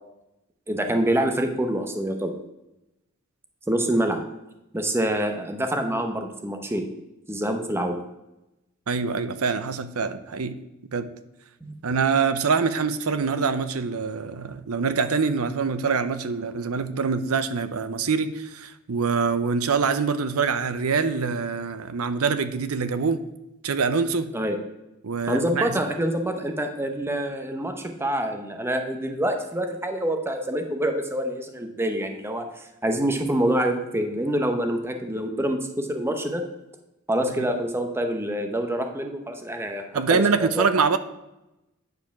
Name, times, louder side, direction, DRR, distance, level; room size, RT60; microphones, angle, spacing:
voice 1, 0.7-2.3 3.7-4.2 4.7-6.8 7.3-8.0 11.6-11.7 24.3-24.6 25.3-36.4 37.1-40.7, right 1 dB, 10° right, 5 dB, 0.8 m, -26 dB
voice 2, 8.9-10.6 10.9-11.1 11.8-23.2 23.6-24.3 25.0-25.7 37.4-37.5 39.9-41.0, right 5 dB, 80° right, 12 dB, 0.7 m, -24 dB
9.3 x 4.7 x 5.9 m, 0.93 s
head